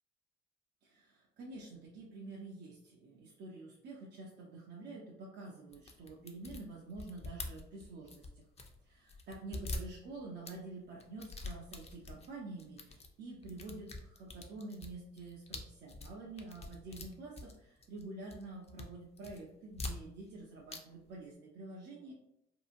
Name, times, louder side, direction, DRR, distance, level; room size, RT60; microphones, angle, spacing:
voice 1, 0.8-8.4 8.8-22.1, right 2 dB, 55° right, -3 dB, 0.7 m, -48 dB
sound 1, 5.7-8.8 9.1-10.6 11.0-12.3 12.6-13.1 13.4-18.0 18.3-18.9 19.2-20.4 20.7-20.8 21.1-21.2, left 2 dB, 30° left, 0.6 m, -45 dB
2.8 x 2.4 x 2.5 m, 0.78 s
hypercardioid pair, 55°, 21 cm